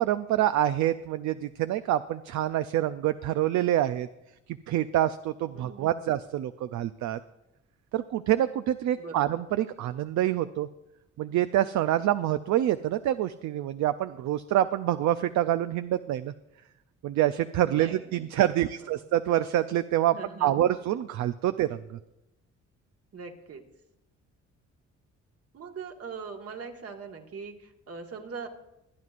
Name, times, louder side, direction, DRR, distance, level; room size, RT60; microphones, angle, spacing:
voice 1, 0.0-4.1 4.5-7.2 7.9-10.7 11.2-16.3 17.0-20.2 20.4-22.0, right 12 dB, 70° right, 11 dB, 0.5 m, -26 dB
voice 2, 5.5-6.1 9.0-9.3 17.7-19.0 20.1-20.7 23.1-23.6 25.5-28.5, right 5 dB, 50° right, 3 dB, 1.6 m, -42 dB
24.5 x 9.4 x 2.5 m, 0.91 s
cardioid pair, 90°, 30 cm